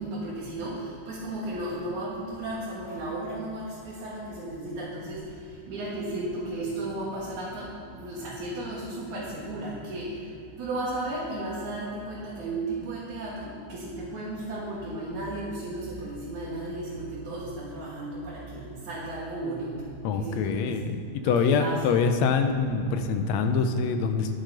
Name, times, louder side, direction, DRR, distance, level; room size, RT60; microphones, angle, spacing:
voice 1, 0.0-5.3 5.7-10.2 10.6-20.8 21.2-21.8, right 2 dB, 70° right, -8 dB, 3.1 m, -34 dB
voice 2, 20.0-24.4, left 5 dB, 75° left, 7 dB, 1.7 m, -25 dB
11.0 x 7.6 x 5.1 m, 2.7 s
omnidirectional pair, 3.6 m